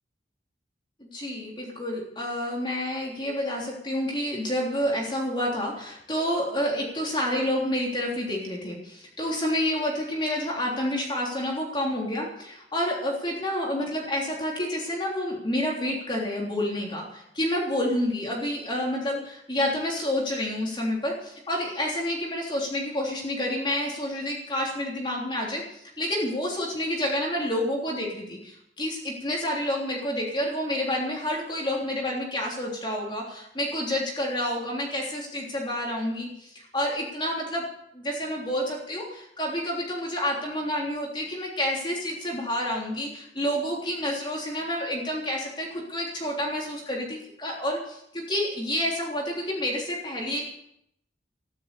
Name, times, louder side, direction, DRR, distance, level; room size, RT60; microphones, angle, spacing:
voice 1, 1.0-37.6 37.9-50.5, left 1 dB, 25° left, -2 dB, 3.4 m, -29 dB
14.0 x 11.5 x 7.0 m, 0.74 s
head